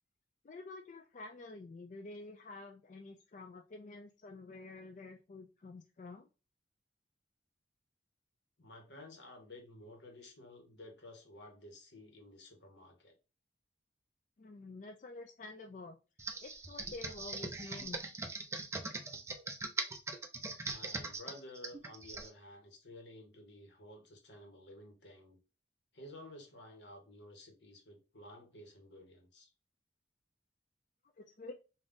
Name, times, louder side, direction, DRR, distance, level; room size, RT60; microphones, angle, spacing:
voice 1, 0.4-6.3 14.4-16.0 16.4-18.1 31.0-31.5, left 3 dB, 45° left, 0.4 m, -49 dB
voice 2, 8.6-13.2 20.6-25.4 25.9-29.5, left 1 dB, 75° left, 1.3 m, -53 dB
Computer keyboard, 16.2-22.3, right 3 dB, 15° right, 0.5 m, -41 dB
3.6 x 2.6 x 3.9 m
head